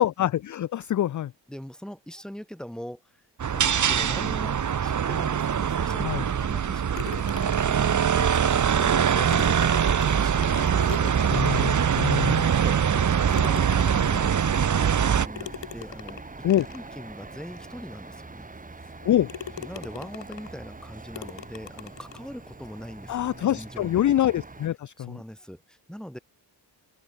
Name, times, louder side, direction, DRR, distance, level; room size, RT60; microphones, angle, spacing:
voice 1, 0.0-1.3 6.0-6.2 11.3-12.5 16.4-16.7 19.0-19.3 23.1-25.2, left 12 dB, 45° left, 0.5 m, -25 dB
voice 2, 1.5-3.2 3.5-7.0 7.5-9.8 10.1-12.1 12.4-16.5 16.7-18.5 18.7-19.0 19.6-24.1 25.0-26.2, equal, ahead, 4.2 m, -42 dB
sound 1, 3.4-15.3, right 8 dB, 40° right, 1.0 m, -23 dB
sound 2, 7.0-7.9 9.0-9.1 9.3-11.9 12.5-12.6 13.3-14.3 15.4-16.9 17.6-17.7 18.2-18.3 18.8-19.0 19.3-20.6 21.1-22.3, left 9 dB, 75° left, 6.2 m, -41 dB
sound 3, 7.0-24.7, right 3 dB, 15° right, 1.7 m, -41 dB
open air
cardioid pair, 110°, 45 cm